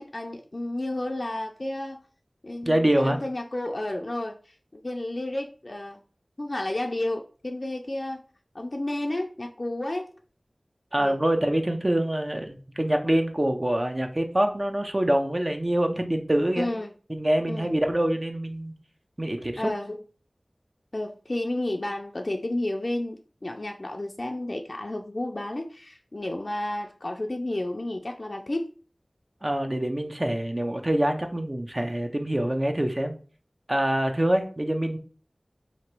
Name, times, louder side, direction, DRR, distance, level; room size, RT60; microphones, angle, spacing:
voice 1, 0.0-2.0 2.4-4.3 4.7-6.0 6.4-8.2 8.5-10.1 11.0-11.1 16.6-16.9 17.5-17.7 19.6-20.0 20.9-28.7, left 1 dB, 50° left, 0.4 m, -31 dB
voice 2, 2.7-3.2 10.9-16.7 17.1-18.7 19.2-19.7 29.4-33.1 33.7-35.0, right 1 dB, 35° right, 0.6 m, -25 dB
2.9 x 2.9 x 4.5 m
wide cardioid pair, 45°, 0 cm